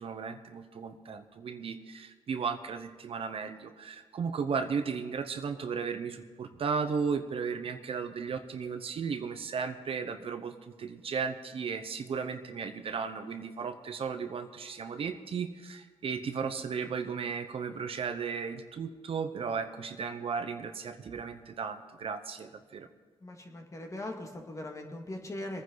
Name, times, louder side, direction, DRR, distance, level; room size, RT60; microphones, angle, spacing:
voice 1, 0.0-10.5 10.8-22.9, right 6 dB, 60° right, 8 dB, 0.9 m, -35 dB
voice 2, 23.2-25.6, left 1 dB, 30° left, 2 dB, 2.2 m, -40 dB
22.5 x 9.8 x 4.0 m, 1.4 s
cardioid pair, 90°, 11 cm